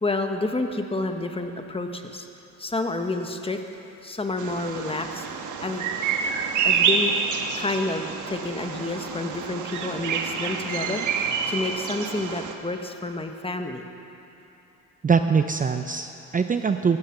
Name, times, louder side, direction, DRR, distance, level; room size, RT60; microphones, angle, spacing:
voice 1, 0.0-2.3 2.6-3.6 4.0-5.2 5.6-5.8 6.6-7.1 7.6-11.0 11.5-13.8, left 2 dB, 20° left, 5 dB, 1.3 m, -29 dB
Bird vocalization bird call bird song, 4.4-12.5, right 6 dB, 80° right, 1.3 m, -27 dB
voice 2, 15.0-17.0, right 5 dB, 25° right, 7 dB, 0.6 m, -22 dB
16.5 x 14.5 x 6.0 m, 2.9 s
cardioid pair, 90°, 30 cm